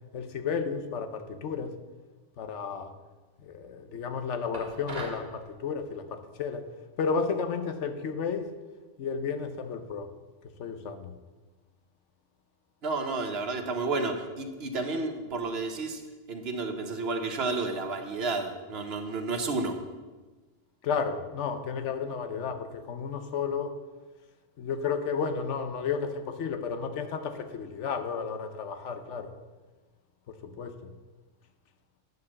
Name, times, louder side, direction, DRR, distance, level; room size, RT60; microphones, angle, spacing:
voice 1, 0.1-1.7 2.4-2.9 3.4-6.7 7.0-8.5 9.0-10.1 10.6-11.1 20.8-23.7 24.6-29.3 30.4-30.9, left 6 dB, 75° left, 9 dB, 1.1 m, -32 dB
sound 1, 4.5-5.3, right 2 dB, 35° right, 1.5 m, -39 dB
voice 2, 12.8-16.0 16.3-19.7, right 3 dB, 60° right, 6 dB, 1.1 m, -31 dB
9.3 x 4.9 x 7.2 m, 1.3 s
omnidirectional pair, 1.2 m